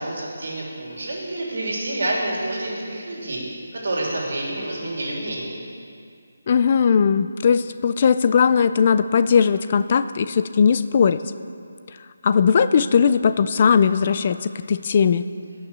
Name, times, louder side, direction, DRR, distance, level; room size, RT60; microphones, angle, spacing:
voice 1, 0.0-3.4 3.7-5.6, right 1 dB, 50° right, -3 dB, 3.1 m, -28 dB
voice 2, 6.5-11.2 12.2-15.3, left 6 dB, 25° left, 13 dB, 0.3 m, -18 dB
18.0 x 6.3 x 7.3 m, 2.4 s
hypercardioid pair, 180°, 0 cm